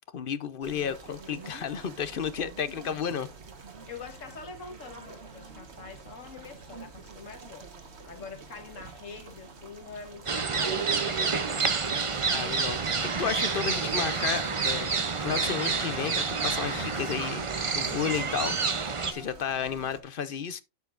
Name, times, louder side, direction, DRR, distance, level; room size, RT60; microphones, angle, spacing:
voice 1, 0.1-3.3 12.3-17.4 17.7-18.6 19.1-20.6, left 7 dB, 50° left, 0.8 m, -32 dB
sound 1, 0.6-20.0, right 4 dB, 55° right, 1.5 m, -48 dB
voice 2, 3.9-7.8 8.0-11.6, left 5 dB, 75° left, 1.8 m, -44 dB
sound 2, 10.3-19.1, right 5 dB, 35° right, 0.6 m, -28 dB
12.0 x 6.9 x 2.5 m
omnidirectional pair, 1.4 m